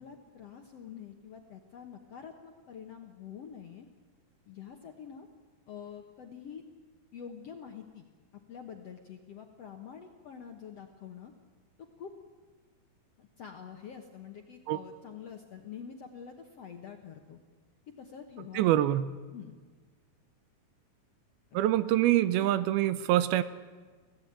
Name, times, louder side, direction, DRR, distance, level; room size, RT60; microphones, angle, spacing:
voice 1, 0.0-3.9 4.5-5.3 5.7-6.6 7.1-8.1 8.5-11.3 11.8-12.1 13.2-17.4 18.0-18.8 19.3-19.6 21.5-21.6 22.4-22.6, left 7 dB, 65° left, 4 dB, 1.6 m, -46 dB
voice 2, 18.5-19.1 21.5-23.4, right 13 dB, 80° right, 14 dB, 2.6 m, -25 dB
24.5 x 16.5 x 8.8 m, 1.4 s
omnidirectional pair, 4.5 m